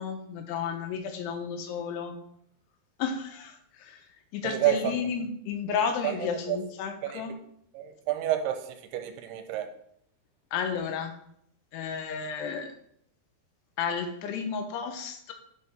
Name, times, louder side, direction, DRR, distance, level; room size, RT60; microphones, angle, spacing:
voice 1, 0.0-2.2 3.0-4.0 4.3-7.3 10.5-11.1 11.7-12.7 13.8-15.3, left 6 dB, 90° left, 6 dB, 2.9 m, -32 dB
voice 2, 4.4-4.8 6.0-6.6 7.0-7.2 7.7-9.7, right 13 dB, 85° right, 6 dB, 2.6 m, -29 dB
9.6 x 4.7 x 3.3 m, 0.70 s
omnidirectional pair, 4.7 m